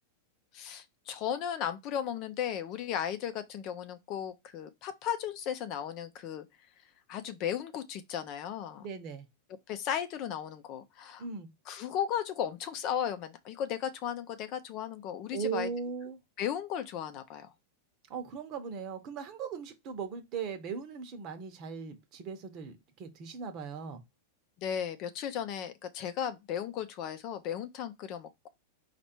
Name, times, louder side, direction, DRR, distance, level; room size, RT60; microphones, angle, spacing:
voice 1, 0.5-6.5 7.1-8.9 9.7-11.2 11.7-15.7 16.4-17.5 24.6-28.5, left 9 dB, 45° left, 0.6 m, -35 dB
voice 2, 8.8-9.3 11.2-11.5 15.3-16.2 18.1-24.0, right 6 dB, 40° right, 1.0 m, -38 dB
4.3 x 2.5 x 4.4 m
supercardioid pair, 135°, 0 cm